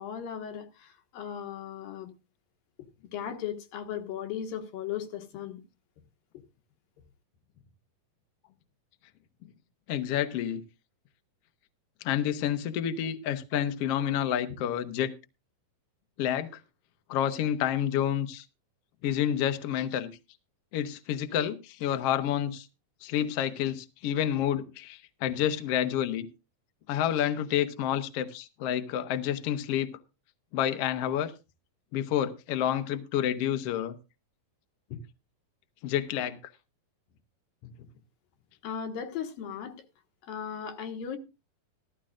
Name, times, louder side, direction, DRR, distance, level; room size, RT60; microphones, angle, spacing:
voice 1, 0.0-2.1 3.1-5.6 38.6-39.8 40.2-41.2, left 8 dB, 90° left, 3.1 m, -37 dB
voice 2, 9.9-10.6 12.0-15.1 16.2-16.6 17.1-18.4 19.0-20.1 20.7-22.7 23.0-26.3 26.9-29.9 30.5-31.3 31.9-33.9 34.9-35.0 35.8-36.4, left 10 dB, 70° left, 1.5 m, -29 dB
14.5 x 14.5 x 2.5 m
omnidirectional pair, 4.0 m